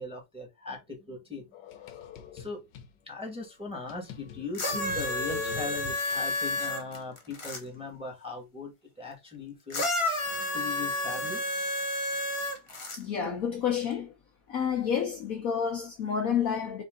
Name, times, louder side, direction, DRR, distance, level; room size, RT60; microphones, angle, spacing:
voice 1, 0.0-1.5 2.3-2.6 3.1-8.7 9.0-9.8 10.4-11.4, left 3 dB, 5° right, 1.2 m, -39 dB
sound 1, 1.5-2.9 3.4-3.5 3.9-6.3, left 9 dB, 85° left, 1.3 m, -41 dB
sound 2, 4.5-7.6 9.7-13.0 13.9-14.0, left 1 dB, 40° left, 0.4 m, -31 dB
voice 2, 12.9-14.1 14.5-16.8, left 7 dB, 60° left, 1.0 m, -29 dB
4.5 x 2.7 x 3.7 m
omnidirectional pair, 1.9 m